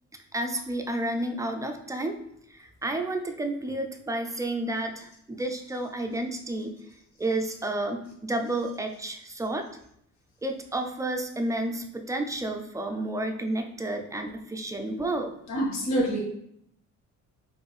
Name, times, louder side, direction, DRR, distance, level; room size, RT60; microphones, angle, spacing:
voice 1, 0.3-2.2 2.5-6.8 7.2-9.7 10.4-15.3, right 1 dB, 10° right, 4 dB, 0.5 m, -31 dB
voice 2, 15.5-16.2, right 1 dB, 65° left, -3 dB, 1.6 m, -26 dB
4.3 x 2.6 x 3.2 m, 0.72 s
cardioid pair, 90°, 30 cm